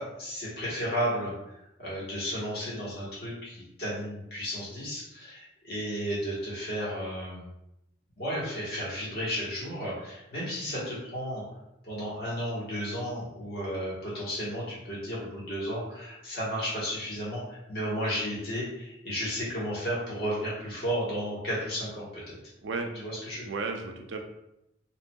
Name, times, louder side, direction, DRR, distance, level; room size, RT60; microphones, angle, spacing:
voice 1, 0.0-1.3 1.8-7.5 8.2-11.4 11.8-22.3 23.0-23.4, equal, 50° left, -7 dB, 1.3 m, -33 dB
voice 2, 22.6-23.1 23.4-24.2, right 3 dB, 70° right, 4 dB, 0.4 m, -34 dB
3.0 x 2.6 x 2.2 m, 0.86 s
head